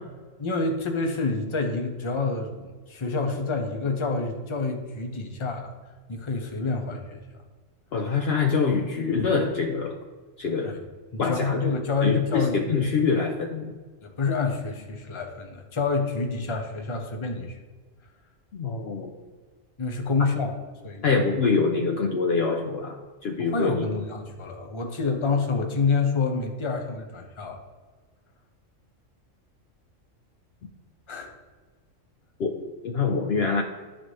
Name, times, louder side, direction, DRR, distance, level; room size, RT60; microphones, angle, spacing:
voice 1, 0.4-2.5 2.9-5.7 6.1-7.2 10.6-10.8 11.1-12.6 14.0-17.6 19.8-20.6 20.8-21.2 23.4-27.6 31.1-31.3, left 4 dB, 30° left, 3 dB, 0.7 m, -28 dB
voice 2, 7.9-10.0 10.4-10.7 11.2-11.6 12.0-13.8 18.5-19.1 21.0-23.8 32.4-33.6, left 5 dB, 60° left, 3 dB, 0.7 m, -25 dB
11.5 x 4.0 x 3.2 m, 1.4 s
omnidirectional pair, 1.4 m